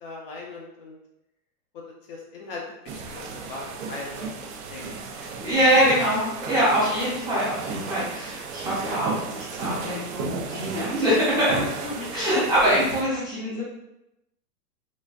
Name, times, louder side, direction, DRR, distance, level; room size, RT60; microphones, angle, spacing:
voice 1, 0.0-1.0 2.1-4.2 4.6-5.3 11.8-12.1, left 3 dB, 40° left, -1 dB, 0.5 m, -39 dB
sound 1, 2.9-13.0, right 4 dB, 60° right, 0.6 m, -34 dB
voice 2, 5.4-11.6 12.1-13.6, equal, 10° right, -9 dB, 0.5 m, -23 dB
3.9 x 2.3 x 2.4 m, 0.85 s
supercardioid pair, 150°, 46 cm